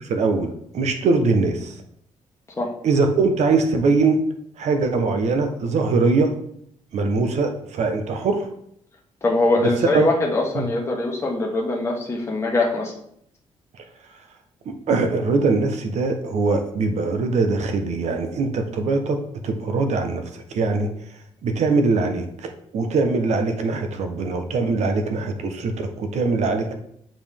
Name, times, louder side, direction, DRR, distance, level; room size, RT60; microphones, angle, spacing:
voice 1, 0.0-1.7 2.8-4.2 4.6-6.3 6.9-8.5 9.8-10.1 10.5-10.6 14.7-20.9 21.4-26.7, right 3 dB, 70° right, 5 dB, 1.0 m, -22 dB
voice 2, 9.2-12.9, left 2 dB, 20° left, -2 dB, 1.2 m, -22 dB
7.7 x 5.3 x 3.5 m, 0.71 s
wide cardioid pair, 145°, 12 cm